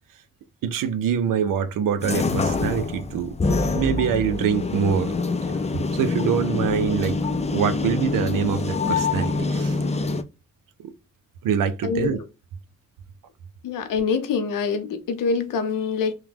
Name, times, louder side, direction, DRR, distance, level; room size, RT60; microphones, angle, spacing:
voice 1, 0.6-3.4 3.8-5.1 5.4-5.5 5.9-7.2 7.5-9.8 10.8-10.9 11.4-12.2, right 7 dB, 90° right, 0.5 m, -24 dB
sound 1, 2.0-10.2, left 3 dB, 20° left, 0.4 m, -25 dB
voice 2, 11.8-12.2 13.6-16.1, left 5 dB, 85° left, 0.7 m, -25 dB
3.0 x 2.2 x 3.3 m
cardioid pair, 80°, 32 cm